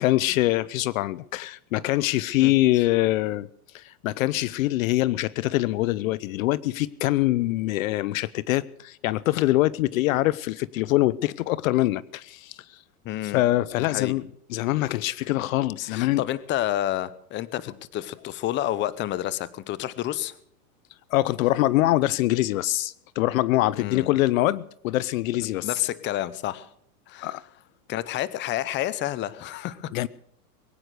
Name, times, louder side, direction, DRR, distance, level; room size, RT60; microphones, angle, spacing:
voice 1, 0.0-3.5 3.7-12.8 13.2-16.2 21.1-25.7 27.2-27.4 29.9-30.1, left 16 dB, 60° left, 0.7 m, -24 dB
voice 2, 13.0-13.4 13.8-14.1 15.8-20.4 23.7-24.2 25.6-26.7 27.1-27.4 27.9-29.9, left 13 dB, 25° left, 0.8 m, -29 dB
21.5 x 9.6 x 6.6 m
supercardioid pair, 135°, 45 cm